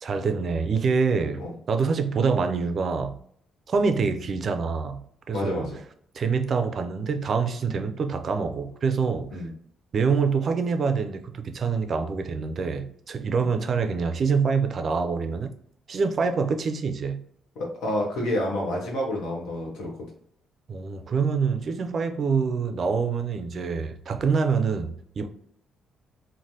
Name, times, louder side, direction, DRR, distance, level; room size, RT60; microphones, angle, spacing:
voice 1, 0.0-3.2 3.7-5.7 6.1-9.4 9.9-15.5 15.9-17.2 20.7-25.3, right 5 dB, 50° right, 0.4 m, -26 dB
voice 2, 5.3-5.8 9.3-9.5 13.4-13.5 17.5-20.1, left 1 dB, 85° left, 1.1 m, -29 dB
3.2 x 2.1 x 2.7 m
cardioid pair, 90°, 0 cm